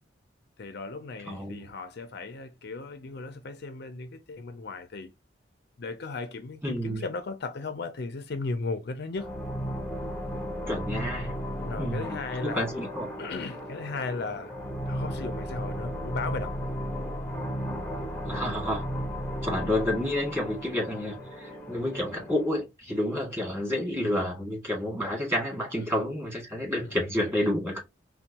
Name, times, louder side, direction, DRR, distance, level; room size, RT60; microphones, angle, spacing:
voice 1, 0.6-5.1 5.8-9.3 11.6-12.8 13.2-14.6 14.9-16.6 26.8-27.0, left 3 dB, 60° left, 0.5 m, -36 dB
voice 2, 1.3-1.6 6.6-7.0 10.7-11.4 11.8-13.1 18.3-18.9 19.4-27.8, left 1 dB, 15° right, 1.9 m, -30 dB
sound 1, 9.2-22.5, equal, 10° left, 0.7 m, -35 dB
4.4 x 2.2 x 2.8 m
head